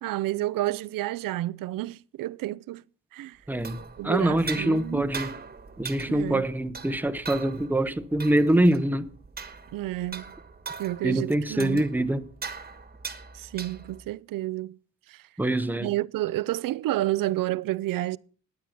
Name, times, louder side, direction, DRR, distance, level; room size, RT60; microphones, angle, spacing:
voice 1, 0.0-2.8 3.1-3.4 4.0-5.1 6.1-6.4 9.7-10.2 10.8-11.8 13.3-14.8 15.1-15.2 15.8-18.2, right 15 dB, 75° right, 0.5 m, -30 dB
sound 1, 3.4-14.1, right 5 dB, 30° right, 1.3 m, -41 dB
voice 2, 3.5-3.8 4.0-5.3 5.8-9.1 11.0-12.3 15.4-15.9, right 1 dB, 5° right, 0.7 m, -24 dB
11.5 x 9.2 x 5.8 m
cardioid pair, 115°, 33 cm